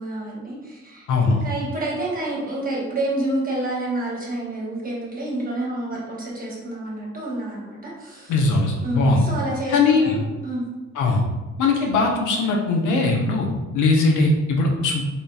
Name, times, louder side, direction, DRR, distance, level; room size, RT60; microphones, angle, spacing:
voice 1, 0.0-8.3 8.8-10.6 11.8-11.9, right 1 dB, 30° right, -4 dB, 1.1 m, -29 dB
voice 2, 1.1-1.4 8.3-9.2 9.7-10.2 11.0-11.2 11.6-13.5 13.7-15.1, left 3 dB, 80° left, 0 dB, 0.7 m, -20 dB
3.6 x 2.6 x 2.3 m, 1.2 s
cardioid pair, 90°, 30 cm